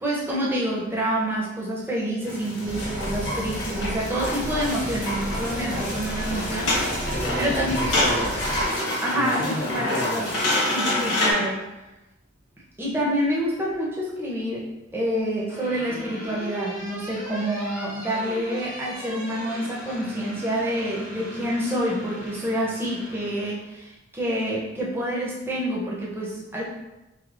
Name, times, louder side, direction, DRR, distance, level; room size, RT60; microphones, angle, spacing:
voice 1, 0.0-7.0 7.3-7.9 9.0-10.3 10.7-11.6 12.8-14.6 14.9-26.6, equal, 10° right, -5 dB, 0.6 m, -27 dB
sound 1, 2.2-11.3, left 1 dB, 75° left, 0.9 m, -27 dB
sound 2, 2.6-8.7, right 1 dB, 75° right, 0.6 m, -33 dB
sound 3, 4.7-11.6 13.1-13.8 15.0-23.5, right 1 dB, 40° right, 1.1 m, -39 dB
voice 2, 7.1-10.5, equal, 50° left, -5 dB, 0.5 m, -32 dB
4.9 x 2.0 x 2.4 m, 1.0 s
head